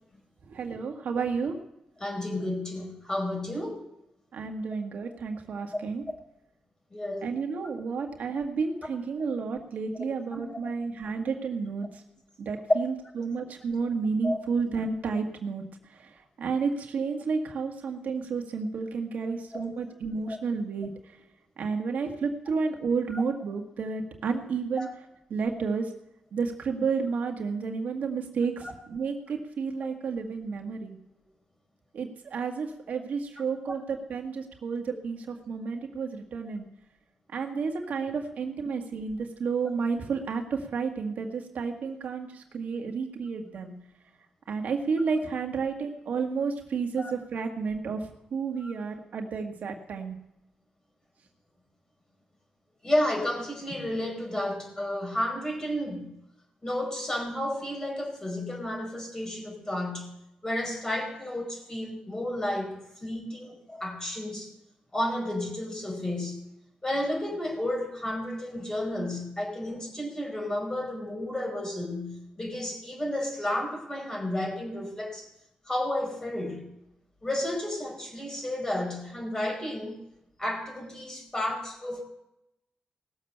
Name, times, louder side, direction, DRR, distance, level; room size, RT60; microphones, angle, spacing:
voice 1, 0.4-1.6 4.3-6.0 7.2-12.0 12.4-21.2 21.6-24.9 25.3-25.9 26.3-31.0 31.9-36.7 37.3-43.7 44.5-50.2, right 5 dB, 70° right, 3 dB, 1.7 m, -31 dB
voice 2, 2.0-3.8 6.9-7.3 10.3-10.7 14.2-14.4 19.5-19.8 20.3-20.4 23.1-23.2 24.8-24.9 47.0-47.1 48.6-48.7 52.8-56.1 56.6-60.1 60.4-64.5 64.9-66.4 66.8-75.3 75.6-76.7 77.2-80.0 80.4-82.0, left 1 dB, 20° left, 2 dB, 4.9 m, -32 dB
18.5 x 7.2 x 6.7 m, 0.84 s
cardioid pair, 85°, 3 cm